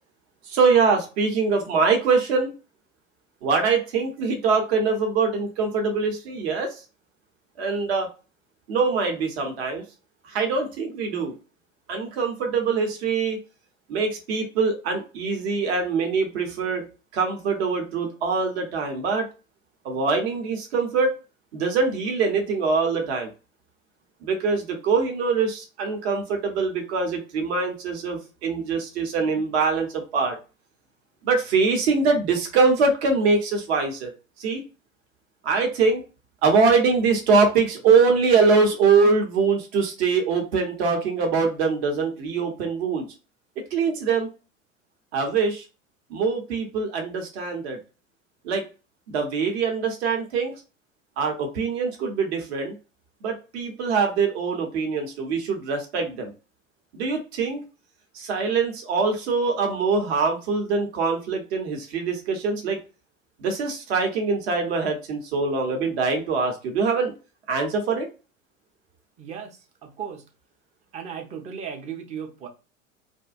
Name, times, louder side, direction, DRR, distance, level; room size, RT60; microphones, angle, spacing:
voice 1, 0.5-2.5 3.4-6.7 7.6-8.1 8.7-9.8 10.3-11.4 11.9-13.4 13.9-16.9 17.1-19.3 19.8-21.1 21.5-23.3 24.2-30.4 31.2-34.1 34.4-34.6 35.4-36.0 36.4-43.1 43.7-44.3 45.1-45.6 46.1-47.8 48.4-48.6 49.1-50.6 51.2-52.8 53.2-56.3 56.9-57.6 58.1-62.8 63.4-67.1 67.5-68.1, right 4 dB, 55° right, 4 dB, 0.8 m, -23 dB
voice 2, 69.2-70.2 70.9-72.5, right 7 dB, 20° right, 3 dB, 0.4 m, -36 dB
2.5 x 2.1 x 2.4 m, 0.32 s
figure-of-eight pair, 80°, 40 cm